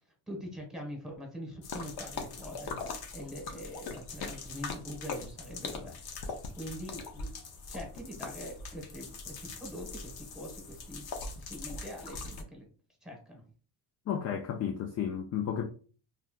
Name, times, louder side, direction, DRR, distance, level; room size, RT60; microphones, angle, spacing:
voice 1, 0.3-7.3 7.7-11.2 11.5-12.7 13.0-13.4, equal, ahead, 1.3 m, -44 dB
sound 1, 1.6-12.4, left 4 dB, 50° left, 0.8 m, -41 dB
voice 2, 14.1-15.7, left 8 dB, 35° left, 0.4 m, -32 dB
3.2 x 2.8 x 2.3 m
supercardioid pair, 85°, 47 cm